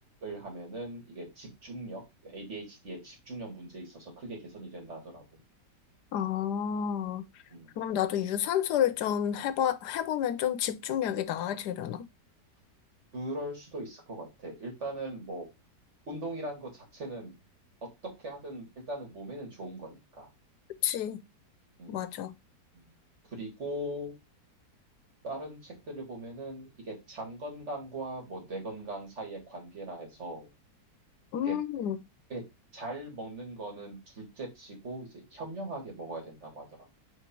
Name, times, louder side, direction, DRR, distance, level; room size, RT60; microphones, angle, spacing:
voice 1, 0.2-5.4 7.5-7.7 13.1-15.5 16.1-17.4 17.8-17.9 18.2-20.3 21.8-22.0 22.7-22.9 23.3-24.1 25.2-30.5 31.5-31.6 32.3-32.4 32.7-37.0, right 1 dB, 45° right, 2.6 m, -40 dB
voice 2, 6.1-7.2 7.8-12.0 20.8-21.2 21.9-22.3 31.3-32.0, left 10 dB, 80° left, 1.3 m, -30 dB
4.6 x 4.5 x 4.5 m
omnidirectional pair, 1.8 m